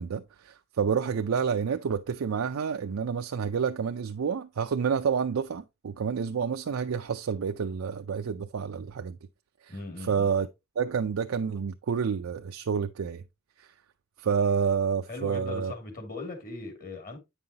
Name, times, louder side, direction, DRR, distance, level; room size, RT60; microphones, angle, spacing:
voice 1, 0.0-9.2 9.6-9.7 10.0-10.5 10.8-13.2 13.6-13.7 14.2-15.7, right 6 dB, 75° right, 0.4 m, -29 dB
voice 2, 9.7-10.3 15.1-17.2, left 2 dB, 40° left, 2.2 m, -39 dB
8.6 x 5.5 x 2.8 m
head